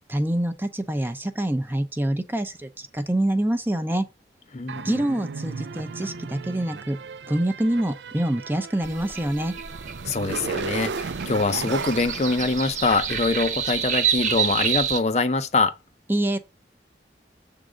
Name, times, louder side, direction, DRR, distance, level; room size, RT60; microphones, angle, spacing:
voice 1, 0.1-4.0 4.8-7.0 7.3-9.6 16.1-16.4, right 1 dB, 10° right, 0.6 m, -26 dB
voice 2, 4.5-5.0 10.0-15.7, left 3 dB, 40° left, 0.6 m, -24 dB
sound 1, 4.7-13.4, right 5 dB, 85° right, 0.5 m, -35 dB
sound 2, 8.8-15.0, right 7 dB, 45° right, 1.0 m, -28 dB
7.3 x 3.7 x 5.0 m
head